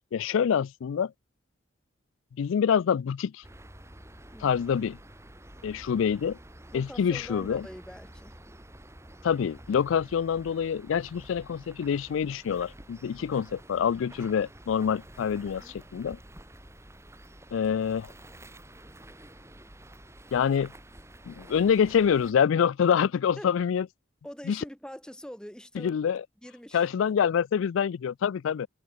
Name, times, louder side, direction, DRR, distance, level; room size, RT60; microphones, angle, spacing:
voice 1, 0.1-1.1 2.4-3.4 4.4-5.0 5.6-6.4 6.7-7.6 9.2-16.2 17.5-18.1 20.3-20.7 21.3-23.9 24.5-24.6 25.8-26.2 26.7-28.7, left 7 dB, 85° left, 0.3 m, -26 dB
sound 1, 3.4-22.3, right 1 dB, 15° right, 6.0 m, -50 dB
voice 2, 6.7-8.4 13.2-13.3 15.4-15.8 23.4-23.5 24.2-26.0 26.4-27.2, equal, 5° left, 1.9 m, -44 dB
head